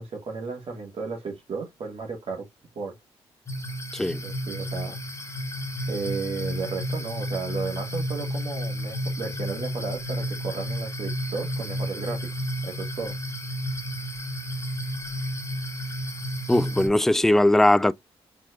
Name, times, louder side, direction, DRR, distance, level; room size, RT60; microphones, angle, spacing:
voice 1, 0.0-2.4 2.7-2.9 4.2-5.0 5.9-12.3 12.6-13.1, right 4 dB, 55° right, 1.6 m, -34 dB
sound 1, 3.5-16.9, equal, 25° left, 1.3 m, -32 dB
voice 2, 16.5-17.9, left 1 dB, 5° left, 0.3 m, -19 dB
4.6 x 3.6 x 2.3 m
supercardioid pair, 60°, 12 cm